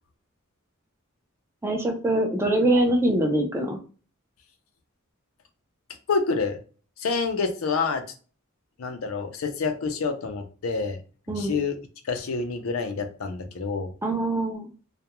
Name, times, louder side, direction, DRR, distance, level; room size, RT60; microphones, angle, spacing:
voice 1, 1.6-3.8 11.3-11.5 14.0-14.7, right 1 dB, 10° right, 3 dB, 0.4 m, -23 dB
voice 2, 6.1-6.6 7.0-8.0 8.8-11.0 11.3-11.8 12.0-13.9, left 4 dB, 75° left, 7 dB, 0.5 m, -27 dB
2.3 x 2.1 x 2.8 m, 0.37 s
head